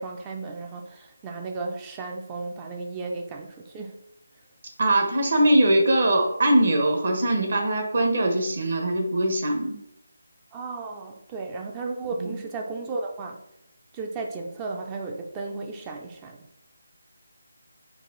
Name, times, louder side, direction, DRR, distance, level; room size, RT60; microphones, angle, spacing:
voice 1, 0.0-4.0 10.5-13.4 13.9-16.4, right 3 dB, 15° right, 2 dB, 0.4 m, -34 dB
voice 2, 4.8-9.8 12.2-12.3, right 1 dB, 55° right, 2 dB, 1.1 m, -21 dB
4.7 x 2.5 x 3.8 m, 0.80 s
figure-of-eight pair, 160°, 0 cm